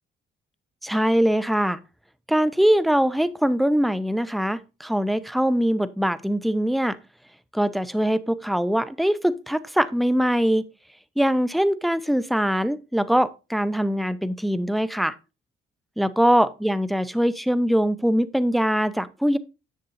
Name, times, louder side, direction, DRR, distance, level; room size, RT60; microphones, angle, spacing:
voice 1, 0.8-1.8 2.3-7.0 7.5-10.6 11.2-15.1 16.0-19.4, equal, ahead, 0.6 m, -22 dB
9.9 x 7.4 x 2.6 m
cardioid pair, 90°, 20 cm